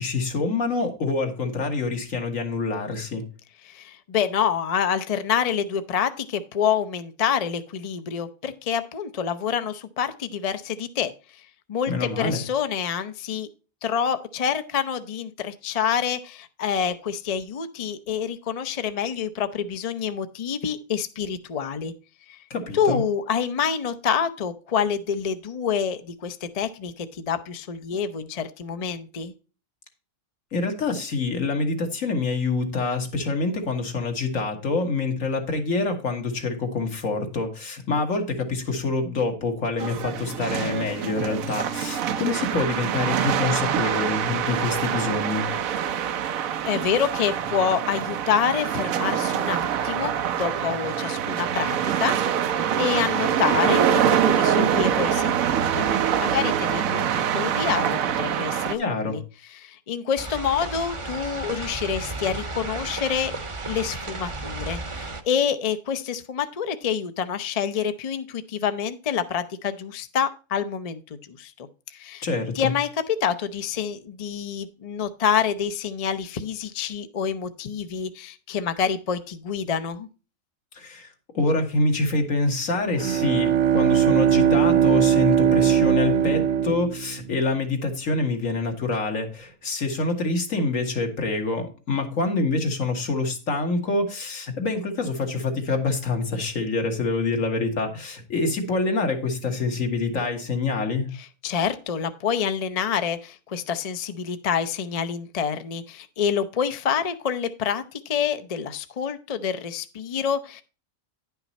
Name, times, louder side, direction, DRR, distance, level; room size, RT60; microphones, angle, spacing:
voice 1, 0.0-3.2 11.9-12.4 22.5-23.0 30.5-45.5 58.8-59.2 72.2-72.7 80.7-81.1 81.3-101.1, left 3 dB, 75° left, 4 dB, 1.9 m, -26 dB
voice 2, 3.6-11.1 11.7-13.5 13.8-21.9 22.3-22.4 22.7-29.3 46.6-55.9 56.2-59.2 59.5-63.3 63.7-72.2 72.5-80.1 101.2-110.6, left 7 dB, 45° left, 10 dB, 0.5 m, -27 dB
sound 1, 39.8-58.7, right 8 dB, 90° right, 1.1 m, -25 dB
sound 2, 60.2-65.2, right 3 dB, 30° right, 0.7 m, -33 dB
Bowed string instrument, 82.8-87.6, right 9 dB, 65° right, 0.8 m, -20 dB
10.0 x 5.8 x 4.1 m, 0.34 s
omnidirectional pair, 1.4 m